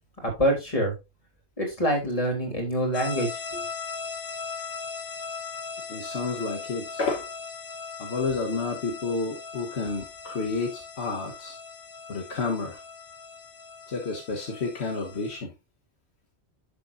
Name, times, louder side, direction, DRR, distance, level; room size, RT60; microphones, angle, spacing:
voice 1, 0.2-0.9 1.6-3.7, equal, 30° left, 1 dB, 3.3 m, -26 dB
sound 1, 2.9-15.4, left 5 dB, 55° left, 1.0 m, -39 dB
voice 2, 5.9-7.3 8.0-11.6 12.1-12.8 13.9-15.5, left 4 dB, 70° left, 2 dB, 1.5 m, -30 dB
10.5 x 6.7 x 2.6 m, 0.23 s
omnidirectional pair, 1.1 m